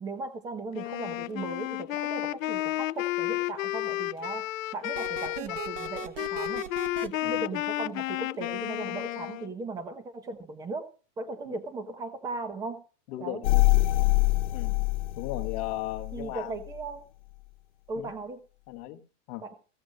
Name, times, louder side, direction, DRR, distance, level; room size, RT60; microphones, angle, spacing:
voice 1, 0.0-4.4 4.7-6.7 7.0-10.9 11.2-12.8 13.2-13.4 16.1-17.0 17.9-18.4 19.4-19.5, right 3 dB, 10° right, 1.0 m, -37 dB
Wind instrument woodwind instrument, 0.7-9.5, left 16 dB, 85° left, 0.7 m, -32 dB
sound 1, 5.0-7.1, right 9 dB, 70° right, 1.5 m, -38 dB
voice 2, 13.1-13.6 14.5-14.8 15.2-16.6 18.0-18.1 18.7-19.0 19.3-19.4, left 14 dB, 30° left, 1.2 m, -37 dB
sound 2, 13.4-16.3 16.7-16.8, left 21 dB, 55° left, 1.2 m, -25 dB
15.5 x 7.7 x 6.4 m
supercardioid pair, 175°, 38 cm